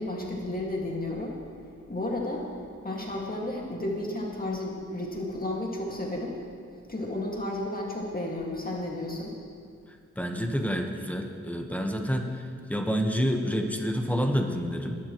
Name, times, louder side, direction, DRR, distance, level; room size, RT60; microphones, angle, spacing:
voice 1, 0.0-1.4 1.9-2.4 2.8-6.4 6.9-9.3, left 1 dB, 30° left, -2 dB, 2.1 m, -32 dB
voice 2, 10.2-12.4 12.7-14.9, equal, 5° left, 3 dB, 1.2 m, -28 dB
21.5 x 12.0 x 3.1 m, 2.2 s
wide cardioid pair, 85°, 30 cm